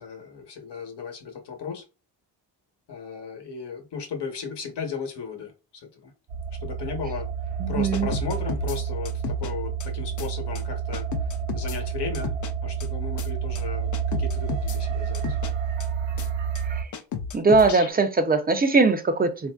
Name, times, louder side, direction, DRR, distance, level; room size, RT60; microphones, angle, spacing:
voice 1, 0.0-1.8 2.9-5.5 6.0-6.1 6.6-7.3 7.7-11.1 11.5-12.3 12.6-15.4, left 6 dB, 60° left, 1.0 m, -35 dB
sound 1, 6.3-16.8, right 7 dB, 65° right, 0.8 m, -29 dB
voice 2, 7.6-8.1 16.8-16.9 17.3-19.5, right 3 dB, 20° right, 0.4 m, -20 dB
sound 2, 7.9-8.8 9.1-9.5 9.8-9.9 10.2-10.3 10.6-10.7 10.9-11.8 12.1-12.5 12.8-12.9 13.2-13.3 13.6-13.7 13.9-14.8 15.1-15.5 15.8-15.9 16.2-16.3 16.6-16.7 16.9-17.9, left 6 dB, 45° left, 0.4 m, -33 dB
4.1 x 2.5 x 2.3 m
wide cardioid pair, 135°, 45 cm